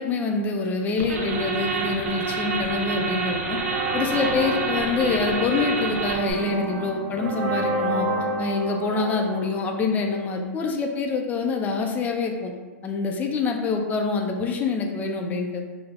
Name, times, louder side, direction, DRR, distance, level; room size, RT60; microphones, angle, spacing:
voice 1, 0.0-3.6 3.9-8.1 8.4-12.5 12.8-15.6, left 4 dB, 20° left, 2 dB, 0.3 m, -26 dB
sound 1, 1.0-6.3, right 4 dB, 90° right, 0.7 m, -27 dB
sound 2, 3.5-10.3, right 2 dB, 20° right, 0.7 m, -31 dB
3.3 x 2.0 x 3.5 m, 1.3 s
hypercardioid pair, 135°, 8 cm